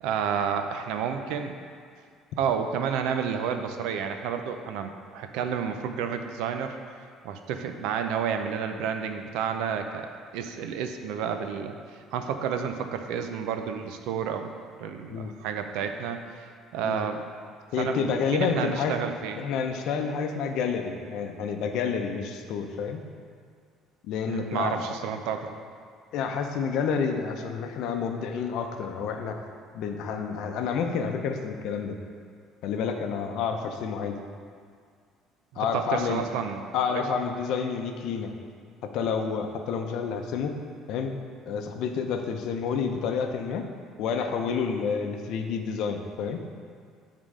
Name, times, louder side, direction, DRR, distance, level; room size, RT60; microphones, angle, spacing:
voice 1, 0.0-1.6 2.4-6.7 7.2-11.7 12.1-14.5 14.8-16.2 16.7-17.2 17.8-19.4 24.3-25.5 35.7-36.6 36.9-37.0, right 7 dB, 85° right, 6 dB, 0.6 m, -30 dB
voice 2, 17.7-18.9 19.4-23.0 24.0-24.8 26.1-29.4 29.7-32.0 32.6-34.2 35.6-36.2 36.7-38.3 38.9-40.5 40.9-41.2 41.5-43.6 44.0-46.4, left 6 dB, 65° left, 5 dB, 0.7 m, -29 dB
9.4 x 3.7 x 4.9 m, 2.1 s
cardioid pair, 150°, 0 cm